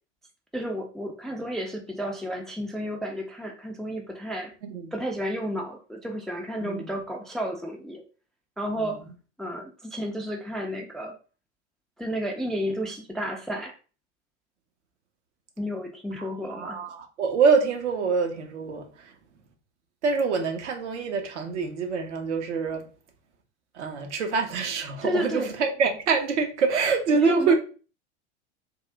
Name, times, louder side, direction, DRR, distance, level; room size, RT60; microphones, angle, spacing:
voice 1, 0.5-4.5 4.9-8.0 8.6-9.0 9.4-11.2 12.0-13.8 15.6-16.8 25.0-25.5 27.1-27.5, equal, ahead, 0.3 m, -31 dB
voice 2, 16.2-19.1 20.0-22.9 23.7-27.6, right 5 dB, 70° right, 1.0 m, -25 dB
3.6 x 2.4 x 3.3 m
hypercardioid pair, 85°, 36 cm